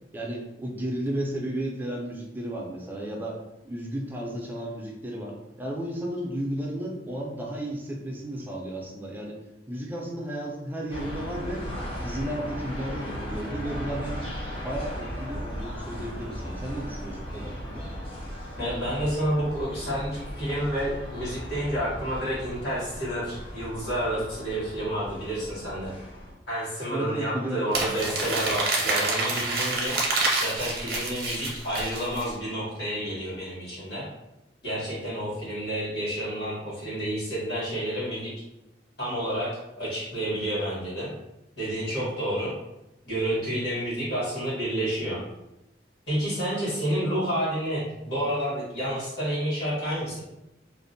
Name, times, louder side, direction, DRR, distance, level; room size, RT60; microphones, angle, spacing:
voice 1, 0.1-3.4 3.6-9.4 9.7-11.7 12.0-14.3 14.6-17.9 26.9-27.7, right 1 dB, 10° right, -2 dB, 0.4 m, -33 dB
sound 1, 10.9-26.3, equal, 30° left, 0.6 m, -37 dB
voice 2, 18.6-25.9 26.5-30.0 30.4-34.1 34.6-38.3 39.0-39.5 39.8-41.1 41.6-42.5 43.1-45.2 46.1-50.2, right 1 dB, 65° left, -8 dB, 1.3 m, -29 dB
Crumpling crinkling, 27.7-32.3, right 3 dB, 55° right, 0.6 m, -27 dB
2.5 x 2.0 x 2.6 m, 0.94 s
head